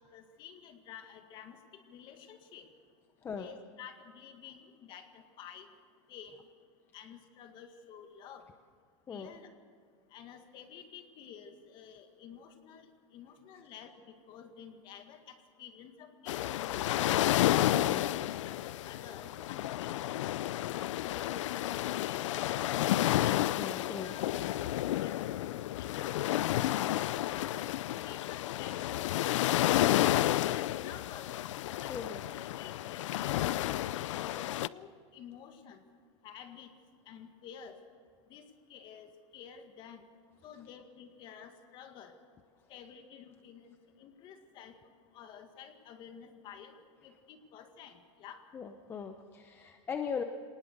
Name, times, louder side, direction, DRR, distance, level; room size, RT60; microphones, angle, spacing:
voice 1, 0.0-2.7 3.2-5.7 6.1-6.4 6.9-8.5 9.1-9.5 10.1-13.9 14.3-17.2 17.9-22.7 23.2-23.4 24.0-24.7 25.0-25.5 25.8-26.8 27.2-31.4 31.8-34.3 34.6-35.8 36.2-36.7 37.1-37.8 38.3-40.0 40.4-42.2 42.7-44.8 45.1-46.7 47.0-48.4, left 8 dB, 30° left, 7 dB, 1.9 m, -51 dB
sound 1, 16.3-34.7, left 14 dB, 90° left, 0.5 m, -31 dB
voice 2, 17.5-18.1 23.6-24.2 31.9-32.2 48.5-50.2, left 6 dB, 15° left, 6 dB, 0.7 m, -39 dB
24.5 x 19.0 x 6.7 m, 2.1 s
supercardioid pair, 165°, 15 cm